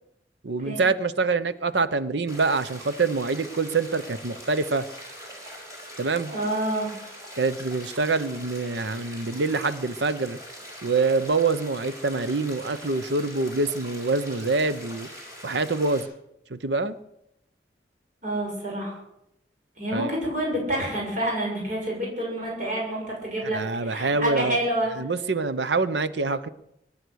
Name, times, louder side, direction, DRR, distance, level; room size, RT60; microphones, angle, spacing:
voice 1, 0.4-4.8 6.0-6.3 7.4-10.4 10.8-15.1 15.4-16.1 16.5-16.9 19.9-20.1 23.5-24.6 25.0-26.5, right 3 dB, 75° right, 13 dB, 0.8 m, -25 dB
sound 1, 2.3-16.0, equal, 20° right, 5.1 m, -42 dB
voice 2, 6.3-6.9 18.2-19.0 19.8-24.9, right 1 dB, 45° right, -2 dB, 6.5 m, -28 dB
23.0 x 9.7 x 6.4 m, 0.81 s
head